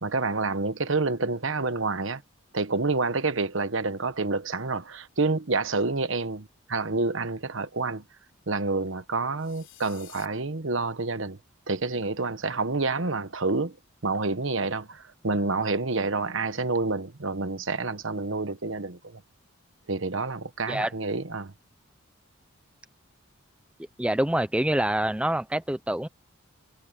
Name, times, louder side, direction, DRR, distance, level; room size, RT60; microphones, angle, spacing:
voice 1, 0.0-2.2 2.5-8.0 8.5-11.4 11.7-13.8 14.0-19.2 19.9-21.5, right 3 dB, 65° right, 1.1 m, -28 dB
sound 1, 9.4-10.3, left 13 dB, 60° left, 3.5 m, -50 dB
voice 2, 24.0-26.1, right 1 dB, 5° right, 0.5 m, -26 dB
head